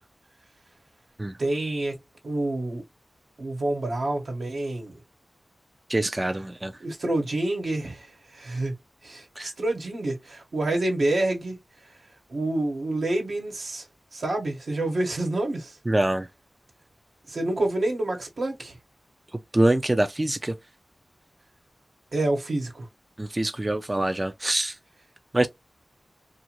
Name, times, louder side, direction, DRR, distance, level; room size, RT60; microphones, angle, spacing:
voice 1, 1.4-1.9 2.2-2.8 3.4-5.0 6.8-8.7 9.0-11.6 12.3-13.8 14.1-15.8 17.3-18.8 22.1-22.9, right 2 dB, 80° right, 1.2 m, -28 dB
voice 2, 5.9-6.7 9.4-9.5 15.9-16.3 19.5-20.5 23.2-24.7 25.3-25.5, right 1 dB, 25° right, 0.3 m, -24 dB
2.6 x 2.4 x 2.9 m
wide cardioid pair, 55°, 0 cm